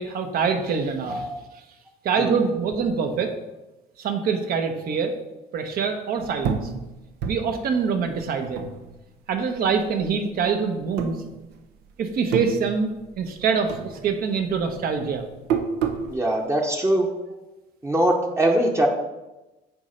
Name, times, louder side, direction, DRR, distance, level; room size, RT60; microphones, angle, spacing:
voice 1, 0.0-1.3 2.0-3.3 4.0-5.1 5.5-6.7 7.2-8.6 9.3-11.2 12.0-15.3, right 5 dB, 65° right, 6 dB, 1.0 m, -25 dB
sound 1, 6.4-9.3 9.6-10.5 10.9-11.8 12.1-13.4 13.7-16.1, right 6 dB, 85° right, 0.8 m, -29 dB
voice 2, 16.1-17.1 17.8-18.9, right 1 dB, 15° right, 1 dB, 0.8 m, -22 dB
8.4 x 3.2 x 5.1 m, 1.0 s
cardioid pair, 110°, 17 cm